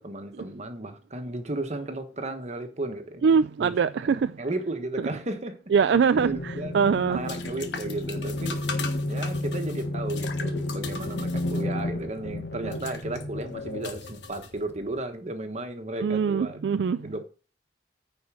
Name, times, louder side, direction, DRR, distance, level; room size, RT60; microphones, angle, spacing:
voice 1, 0.0-3.2 3.6-5.6 6.2-6.8 7.1-8.6 9.1-16.7 17.0-17.2, right 2 dB, 40° right, 1.3 m, -34 dB
voice 2, 3.2-4.3 5.7-7.2 16.0-17.0, right 6 dB, 70° right, 0.3 m, -23 dB
sound 1, 6.1-15.0, left 5 dB, 85° left, 1.2 m, -41 dB
sound 2, 6.1-14.9, left 1 dB, 65° left, 1.3 m, -32 dB
9.5 x 4.5 x 6.2 m
head